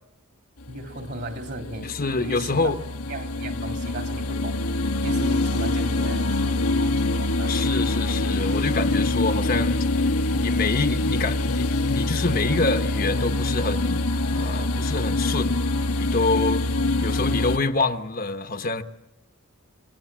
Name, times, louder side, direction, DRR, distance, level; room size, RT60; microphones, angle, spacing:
sound 1, 0.6-17.6, left 2 dB, 90° left, 1.4 m, -25 dB
voice 1, 0.7-2.7 3.1-7.8, right 2 dB, 50° right, 3.1 m, -37 dB
voice 2, 1.8-2.8 7.5-9.9 10.3-14.0 14.3-15.6 16.0-16.7 17.0-18.8, left 3 dB, 40° left, 1.2 m, -26 dB
27.5 x 23.5 x 7.5 m
head